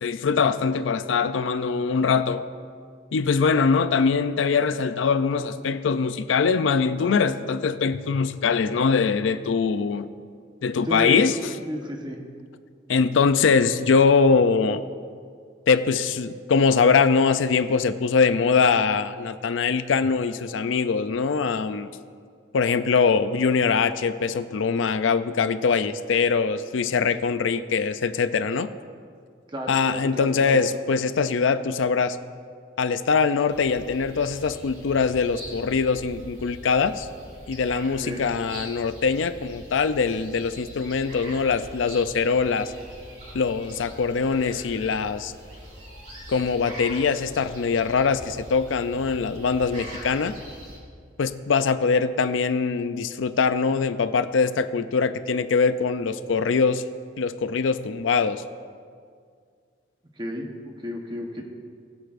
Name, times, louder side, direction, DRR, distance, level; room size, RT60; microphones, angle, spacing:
voice 1, 0.0-2.4 3.1-10.1 10.6-11.5 12.9-14.8 15.7-21.9 22.5-28.7 29.7-32.2 32.8-37.1 37.5-42.7 43.3-45.3 46.3-50.4 51.2-56.8 57.2-58.4, left 5 dB, 85° left, 12 dB, 0.4 m, -22 dB
voice 2, 10.8-11.2 11.7-12.2 29.5-30.6 38.0-38.2 60.2-61.4, left 1 dB, 25° right, 2 dB, 1.1 m, -32 dB
sound 1, 33.5-50.8, equal, 45° right, 3.0 m, -43 dB
20.5 x 7.9 x 2.6 m, 2.1 s
head